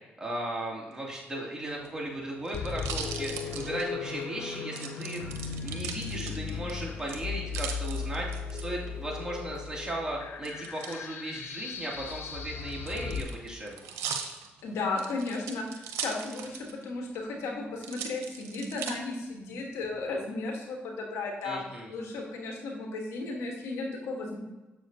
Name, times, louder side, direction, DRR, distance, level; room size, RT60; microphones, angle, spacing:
voice 1, 0.2-5.3 5.6-13.8 21.4-21.9, right 1 dB, 15° right, -3 dB, 2.4 m, -36 dB
sound 1, 1.8-4.2 4.8-6.7 7.1-8.6 10.4-11.0 11.9-16.8 17.1-17.2 17.8-18.9 19.6-20.1, right 7 dB, 90° right, 0.7 m, -39 dB
sound 2, 2.5-13.2, left 6 dB, 60° left, 0.5 m, -37 dB
voice 2, 14.6-21.6 21.9-24.4, left 3 dB, 85° left, 1 dB, 1.3 m, -34 dB
7.4 x 6.4 x 2.7 m, 1.1 s
supercardioid pair, 65°, 4 cm